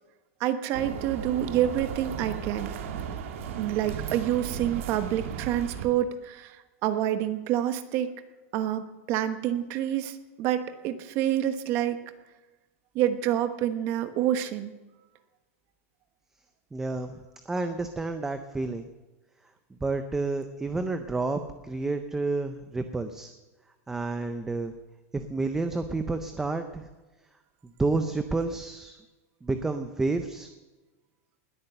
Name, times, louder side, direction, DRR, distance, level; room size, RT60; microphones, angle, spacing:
voice 1, 0.4-2.7 3.6-8.1 8.5-12.0 12.9-14.7, right 11 dB, 30° right, 10 dB, 1.1 m, -27 dB
sound 1, 0.7-5.9, right 7 dB, 65° right, 1.7 m, -36 dB
voice 2, 16.7-18.9 19.8-23.3 23.9-24.7 25.1-26.9 27.8-29.0 29.4-30.5, right 3 dB, 5° right, 8 dB, 0.5 m, -30 dB
20.0 x 8.8 x 6.7 m, 1.2 s
supercardioid pair, 180°, 8 cm